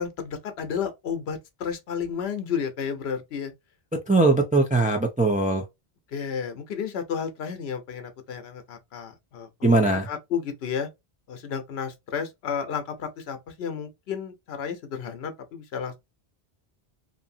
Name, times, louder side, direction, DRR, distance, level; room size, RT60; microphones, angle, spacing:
voice 1, 0.0-3.5 6.1-10.9 11.3-16.0, left 7 dB, 75° left, 0.9 m, -32 dB
voice 2, 4.1-5.6 9.6-10.1, right 2 dB, 15° right, 0.3 m, -20 dB
2.7 x 2.6 x 2.5 m
omnidirectional pair, 1.1 m